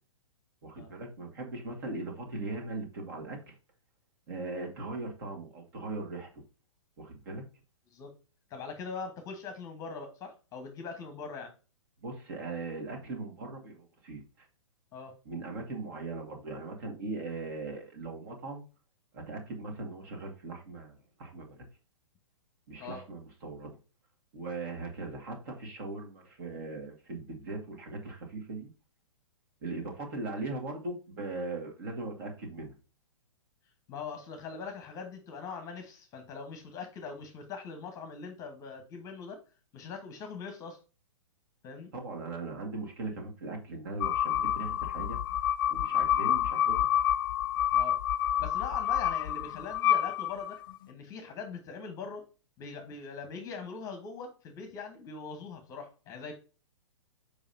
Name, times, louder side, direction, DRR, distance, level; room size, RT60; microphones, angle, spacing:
voice 1, 0.6-3.6 4.3-6.3 7.0-7.4 12.0-14.5 15.3-18.6 19.1-21.7 22.7-23.7 24.3-28.7 29.6-32.7 41.9-45.2 45.7-46.9, right 3 dB, 40° right, 3 dB, 2.0 m, -39 dB
voice 2, 8.5-11.5 14.9-15.1 22.8-23.0 33.9-39.4 39.7-40.8 41.6-41.9 47.7-48.0 48.4-50.6 50.9-52.3 52.6-56.4, left 5 dB, 20° left, 6 dB, 1.2 m, -42 dB
sound 1, 44.0-50.8, left 10 dB, 40° left, 0.4 m, -28 dB
7.0 x 5.1 x 2.7 m, 0.33 s
figure-of-eight pair, 115°, 17 cm